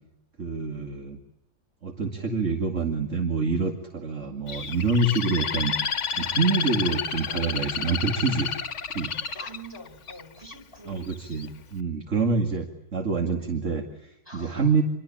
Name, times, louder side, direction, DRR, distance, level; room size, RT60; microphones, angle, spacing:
voice 1, 0.4-1.2 1.8-5.7 6.1-8.5 8.9-9.1 10.9-14.8, right 4 dB, 50° right, 4 dB, 2.6 m, -26 dB
Bird, 4.5-10.5 11.1-11.5, left 6 dB, 50° left, 1.6 m, -30 dB
voice 2, 9.3-11.0 14.2-14.7, right 1 dB, 15° right, 8 dB, 5.1 m, -44 dB
27.0 x 24.5 x 8.7 m, 0.85 s
omnidirectional pair, 1.7 m